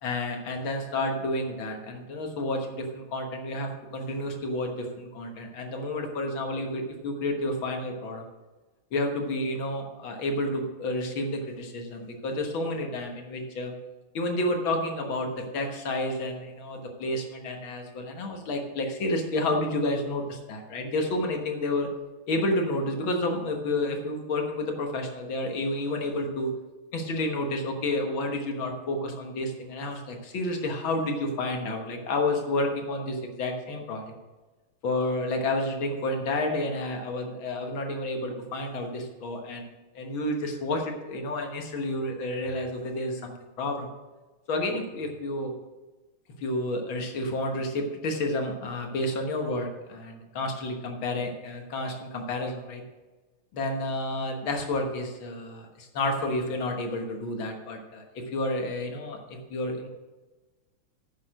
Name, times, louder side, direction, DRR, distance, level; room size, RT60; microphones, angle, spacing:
voice 1, 0.0-8.3 8.9-13.7 14.1-21.9 22.3-26.5 26.9-34.1 34.8-43.9 44.5-45.5 46.4-52.8 53.5-59.9, left 1 dB, 70° left, 3 dB, 2.1 m, -30 dB
9.4 x 6.7 x 6.2 m, 1.2 s
omnidirectional pair, 2.3 m